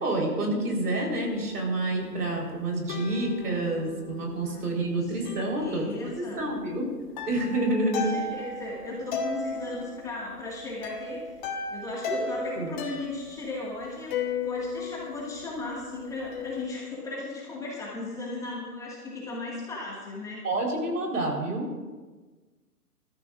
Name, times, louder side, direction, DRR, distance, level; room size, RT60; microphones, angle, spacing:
voice 1, 0.0-6.9 7.3-8.1 12.1-12.3 12.6-12.7 20.4-21.7, right 2 dB, 70° right, 0 dB, 4.3 m, -28 dB
sound 1, 1.1-2.4 2.9-13.3 14.1-16.6, left 4 dB, 30° left, 1.3 m, -37 dB
voice 2, 4.4-6.5 7.9-11.3 11.7-14.2 14.4-20.5, left 2 dB, 5° left, -5 dB, 1.8 m, -36 dB
21.5 x 13.5 x 2.5 m, 1.3 s
hypercardioid pair, 145°, 48 cm